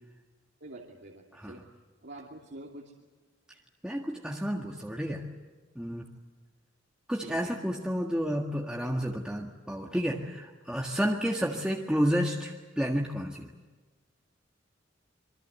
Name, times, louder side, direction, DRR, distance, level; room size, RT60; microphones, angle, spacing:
voice 1, 0.6-1.6 2.0-2.9 7.2-7.6 11.5-11.8, right 1 dB, 65° right, -1 dB, 2.8 m, -47 dB
voice 2, 3.8-5.2 5.8-6.0 7.1-13.5, equal, 5° right, -1 dB, 1.7 m, -30 dB
26.5 x 24.0 x 8.2 m, 1.4 s
head